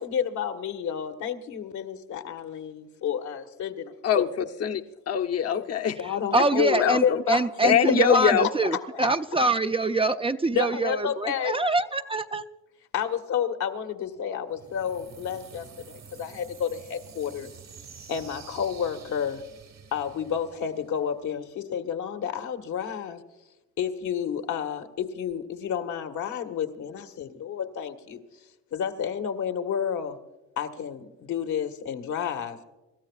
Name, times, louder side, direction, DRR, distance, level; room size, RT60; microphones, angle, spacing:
voice 1, 0.0-4.3 5.5-5.6 6.0-6.7 7.0-8.5 8.9-9.1 10.5-11.6 12.9-17.5 18.1-19.4 19.9-23.2 23.8-28.2 28.7-30.2 30.6-32.6, left 8 dB, 75° left, 6 dB, 1.5 m, -30 dB
voice 2, 4.0-6.0 6.4-7.2 7.6-8.5, left 7 dB, 55° left, 6 dB, 0.9 m, -24 dB
voice 3, 6.3-12.4, right 2 dB, 20° right, 8 dB, 0.5 m, -25 dB
sound 1, 14.5-21.4, right 6 dB, 60° right, 1.7 m, -48 dB
27.0 x 13.5 x 2.4 m, 1.1 s
cardioid pair, 90°, 30 cm